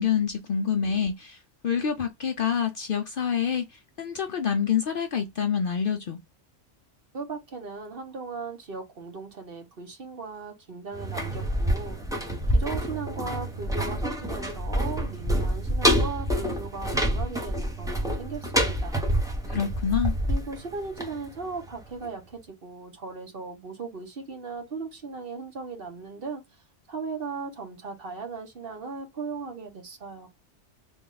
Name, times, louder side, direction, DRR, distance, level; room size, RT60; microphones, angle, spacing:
voice 1, 0.0-1.4 1.6-3.7 4.0-6.2 19.5-20.1, left 7 dB, 60° left, 0.6 m, -26 dB
voice 2, 7.1-12.0 12.5-19.2 20.3-26.4 26.9-30.3, right 4 dB, 50° right, 1.1 m, -37 dB
sound 1, 10.9-21.7 22.0-22.1, equal, 5° right, 0.7 m, -27 dB
3.5 x 2.3 x 3.8 m
omnidirectional pair, 1.3 m